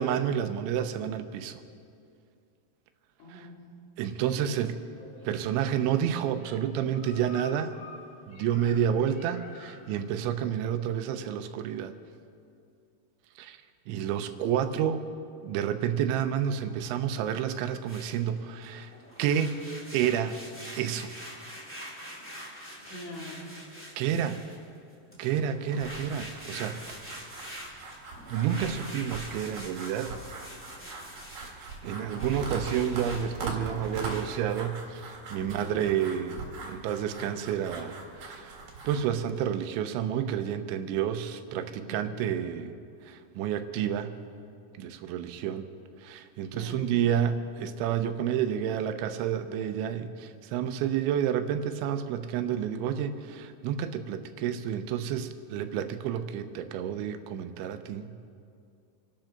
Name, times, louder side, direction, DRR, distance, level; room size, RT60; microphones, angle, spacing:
voice 1, 0.0-1.6 3.3-3.5 4.0-4.8 5.2-7.8 8.3-11.9 13.4-13.6 13.9-15.0 15.4-18.9 19.2-19.6 19.9-20.4 20.7-21.2 24.0-24.4 25.2-27.3 28.3-30.2 31.4-42.7 43.0-44.2 44.8-45.7 46.0-58.2, right 9 dB, 90° right, 9 dB, 3.2 m, -30 dB
voice 2, 3.2-3.6 22.8-23.5 35.4-35.9 41.8-42.3 46.5-46.9, left 1 dB, 85° left, -3 dB, 5.1 m, -44 dB
sound 1, 4.9-9.9, left 2 dB, 35° left, 1.6 m, -50 dB
sound 2, 17.9-18.2 18.5-24.6 25.1-34.3, equal, 5° left, 1.5 m, -45 dB
sound 3, 25.8-39.0, right 3 dB, 50° right, 2.8 m, -41 dB
27.5 x 12.0 x 3.9 m, 2.4 s
omnidirectional pair, 5.2 m